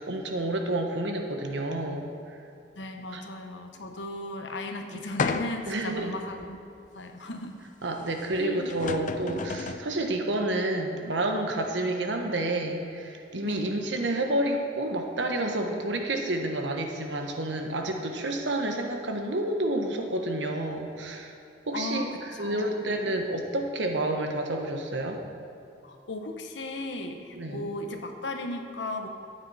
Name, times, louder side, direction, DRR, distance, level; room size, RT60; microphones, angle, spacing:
voice 1, 0.0-2.4 3.1-3.2 4.9-5.0 5.7-6.1 7.8-21.3 21.7-25.2 27.3-27.7, right 1 dB, 80° right, 3 dB, 1.3 m, -29 dB
voice 2, 2.7-6.6 6.9-7.6 8.4-8.7 13.4-13.7 21.7-22.9 25.8-29.1, left 2 dB, 85° left, 5 dB, 1.1 m, -36 dB
sound 1, 5.2-5.8 6.4-6.5 8.3-8.4 8.7-9.9, left 4 dB, 45° left, 0.5 m, -31 dB
13.0 x 8.9 x 4.3 m, 2.6 s
head